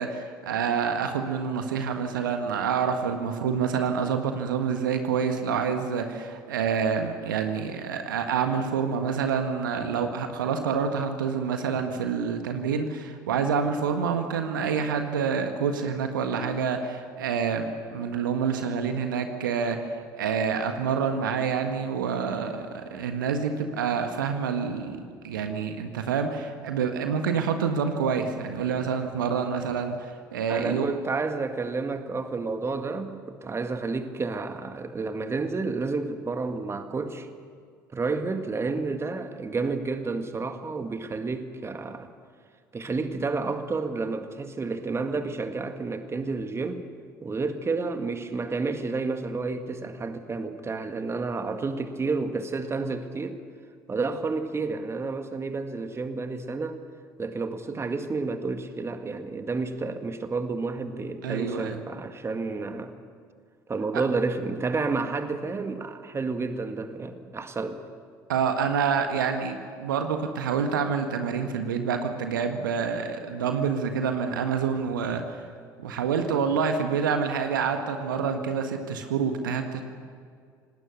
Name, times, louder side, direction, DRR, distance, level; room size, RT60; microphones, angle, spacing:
voice 1, 0.0-30.9 61.2-61.8 68.3-75.2 75.8-79.8, right 6 dB, 75° right, 6 dB, 1.6 m, -27 dB
voice 2, 30.5-37.3 37.9-42.1 42.7-46.8 47.2-53.4 53.9-56.8 57.2-63.0 63.7-67.8, right 3 dB, 25° right, 7 dB, 2.0 m, -30 dB
27.0 x 19.0 x 6.8 m, 2.1 s
figure-of-eight pair, 60°, 11 cm